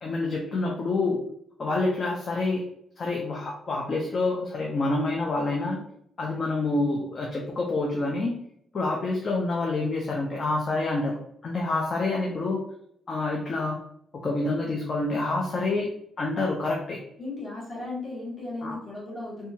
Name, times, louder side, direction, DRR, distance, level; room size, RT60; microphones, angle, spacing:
voice 1, 0.0-1.2 1.6-2.6 3.0-5.8 6.2-8.3 8.7-12.6 13.1-13.8 14.1-17.0 18.6-18.8, left 2 dB, 35° left, -1 dB, 0.4 m, -27 dB
voice 2, 17.2-19.5, left 2 dB, 20° left, -6 dB, 1.1 m, -36 dB
2.7 x 2.3 x 2.7 m, 0.70 s
cardioid pair, 150°, 0 cm